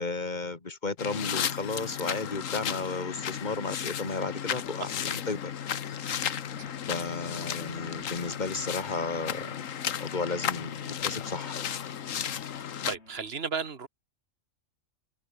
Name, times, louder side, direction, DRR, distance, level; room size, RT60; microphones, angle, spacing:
voice 1, 0.0-5.5 6.9-11.7, left 3 dB, 35° left, 2.2 m, -34 dB
sound 1, 1.0-12.9, left 9 dB, 90° left, 1.4 m, -34 dB
sound 2, 5.7-13.3, left 2 dB, 55° left, 3.9 m, -56 dB
voice 2, 12.9-13.9, right 5 dB, 50° right, 1.9 m, -34 dB
omnidirectional pair, 1.3 m